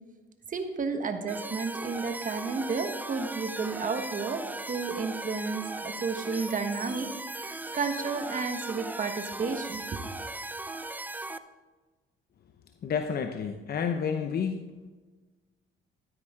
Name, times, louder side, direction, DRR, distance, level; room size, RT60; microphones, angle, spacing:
voice 1, 0.5-4.4 4.7-7.1 7.4-10.0, right 4 dB, 40° right, 6 dB, 1.4 m, -32 dB
sound 1, 1.3-11.4, right 2 dB, 10° right, 0.5 m, -38 dB
voice 2, 12.8-14.7, left 6 dB, 50° left, 6 dB, 0.8 m, -30 dB
13.0 x 9.7 x 3.7 m, 1.3 s
cardioid pair, 90°, 20 cm